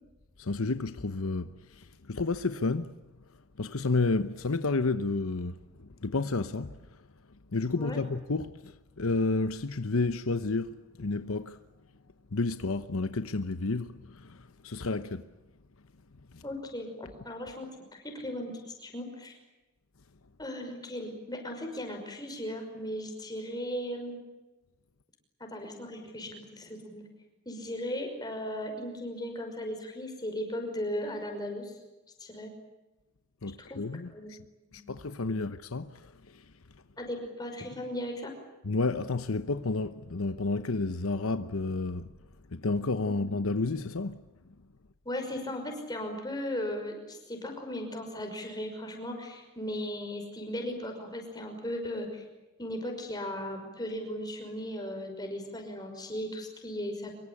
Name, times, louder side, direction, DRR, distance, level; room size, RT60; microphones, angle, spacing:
voice 1, 0.4-2.9 3.6-5.5 5.8-6.7 7.5-11.6 12.3-15.3 16.3-16.4 33.4-34.4 34.7-36.4 38.6-42.1 42.5-44.2, left 3 dB, 75° left, 0.9 m, -31 dB
voice 2, 16.4-19.4 20.4-24.2 25.4-27.0 27.5-31.8 32.2-32.5 33.6-33.8 34.1-34.3 34.6-34.8 35.3-35.4 37.0-38.3 45.1-52.2 52.6-57.1, left 1 dB, 20° left, 5.7 m, -37 dB
25.0 x 23.5 x 8.5 m
head